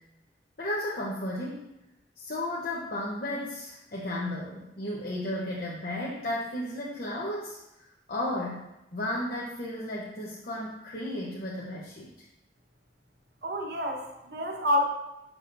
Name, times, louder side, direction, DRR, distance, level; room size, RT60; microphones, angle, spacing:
voice 1, 0.6-1.7 2.2-7.6 8.1-12.3, left 1 dB, 55° left, -5 dB, 0.8 m, -34 dB
voice 2, 13.4-14.8, left 1 dB, 70° right, 1 dB, 1.1 m, -28 dB
6.6 x 6.1 x 2.6 m, 0.92 s
head